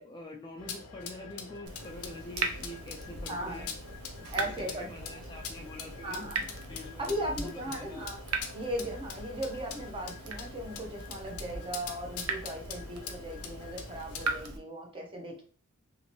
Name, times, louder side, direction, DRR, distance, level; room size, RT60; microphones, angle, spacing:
voice 1, 0.0-3.7 4.2-6.2 6.7-8.1, left 1 dB, 20° left, 1 dB, 0.3 m, -46 dB
sound 1, 0.6-14.4, left 6 dB, 80° left, 0.5 m, -44 dB
Water tap faucet / Drip, 1.7-14.6, right 4 dB, 80° right, 0.5 m, -40 dB
voice 2, 3.3-3.7 4.3-4.9 6.0-6.5 6.7-8.2 8.5-15.4, right 1 dB, 25° right, 0 dB, 0.7 m, -37 dB
2.8 x 2.6 x 3.0 m, 0.42 s
head